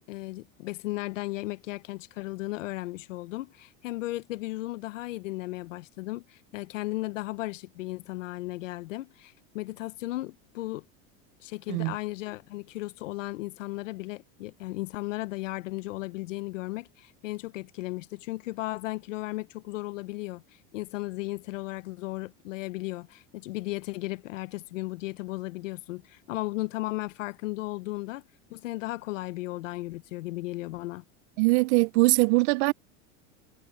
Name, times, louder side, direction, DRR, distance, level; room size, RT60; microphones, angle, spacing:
voice 1, 0.0-10.8 11.4-28.2 28.5-31.0, left 19 dB, 90° left, 0.9 m, -35 dB
voice 2, 31.4-32.7, right 25 dB, 65° right, 0.6 m, -22 dB
supercardioid pair, 120°, 37 cm